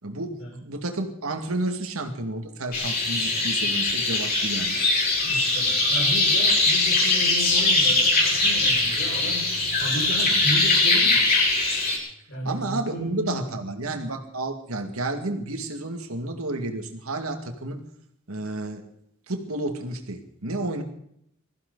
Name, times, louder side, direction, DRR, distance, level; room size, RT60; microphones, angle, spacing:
voice 1, 0.0-4.8 10.3-10.4 12.4-17.8 18.3-18.9 19.3-20.8, right 2 dB, 90° right, 5 dB, 2.3 m, -31 dB
sound 1, 2.7-12.0, left 2 dB, 45° left, 5.7 m, -21 dB
voice 2, 5.3-11.2 12.3-13.4, equal, 60° left, -3 dB, 5.7 m, -34 dB
21.0 x 15.0 x 4.1 m, 0.71 s
head